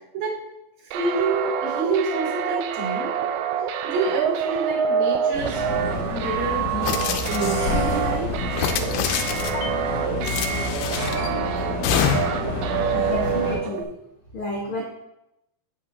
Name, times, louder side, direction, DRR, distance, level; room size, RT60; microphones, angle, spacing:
voice 1, 0.9-3.1 3.8-5.6 6.1-7.0 7.3-8.3, right 3 dB, 60° right, -5 dB, 4.5 m, -27 dB
sound 1, 0.9-13.8, right 8 dB, 85° right, 2.5 m, -27 dB
sound 2, 5.3-13.6, left 3 dB, 50° left, 2.7 m, -29 dB
sound 3, 6.8-7.9 8.5-9.7 10.2-11.3 11.8-12.5, left 8 dB, 90° left, 2.8 m, -26 dB
voice 2, 12.9-13.9 14.3-14.8, left 1 dB, 70° left, -3 dB, 1.2 m, -30 dB
9.3 x 8.3 x 2.8 m, 0.88 s
omnidirectional pair, 4.5 m